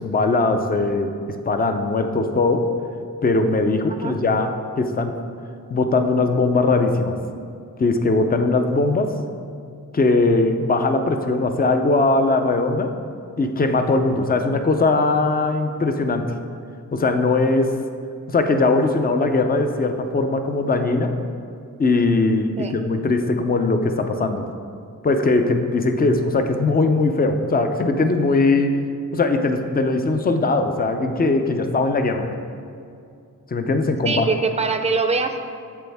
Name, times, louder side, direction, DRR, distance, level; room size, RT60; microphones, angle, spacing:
voice 1, 0.0-2.7 3.2-4.5 4.8-5.2 5.7-7.2 7.8-9.1 9.9-12.9 13.4-16.3 16.9-17.7 18.3-21.1 21.8-24.5 25.0-28.8 29.1-32.3 33.5-34.3, left 3 dB, 25° left, 6 dB, 0.5 m, -20 dB
voice 2, 34.1-35.4, right 4 dB, 20° right, 6 dB, 0.5 m, -23 dB
12.0 x 7.8 x 3.5 m, 2.4 s
wide cardioid pair, 160°, 34 cm